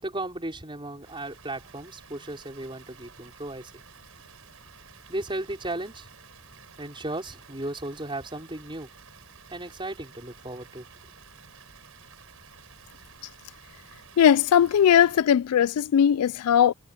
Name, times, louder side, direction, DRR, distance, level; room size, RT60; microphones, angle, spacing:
voice 1, 0.0-3.7 5.1-6.1 6.8-8.9 9.5-10.9, right 1 dB, 25° right, 4.9 m, -35 dB
Water, 1.0-15.2, right 6 dB, 70° right, 6.1 m, -52 dB
voice 2, 14.2-16.7, left 9 dB, 90° left, 0.3 m, -19 dB
head